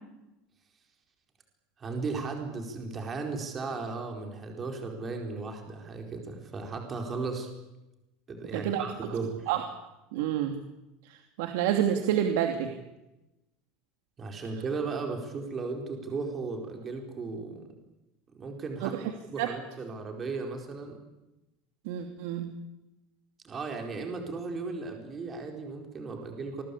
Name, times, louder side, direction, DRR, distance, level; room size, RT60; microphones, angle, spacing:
voice 1, 1.8-7.5 8.3-9.5 14.2-17.7 18.3-18.9 19.3-21.0 23.4-26.6, right 4 dB, 20° right, 3 dB, 4.5 m, -36 dB
voice 2, 8.5-8.8 9.5-9.6 10.1-10.5 11.0-12.7 18.8-19.0 19.4-19.5 21.8-22.5, right 10 dB, 70° right, 5 dB, 2.7 m, -28 dB
27.5 x 21.5 x 8.6 m, 0.97 s
supercardioid pair, 160°, 0 cm